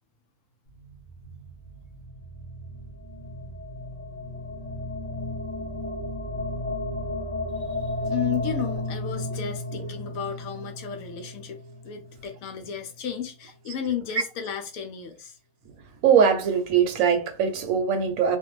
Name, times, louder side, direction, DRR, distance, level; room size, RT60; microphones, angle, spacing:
sound 1, 0.7-12.9, left 1 dB, 45° left, 0.7 m, -34 dB
voice 1, 7.8-11.6 11.8-15.4, left 8 dB, 70° left, 0.9 m, -33 dB
voice 2, 16.0-18.4, right 7 dB, 70° right, 0.9 m, -21 dB
2.6 x 2.2 x 3.0 m
omnidirectional pair, 1.6 m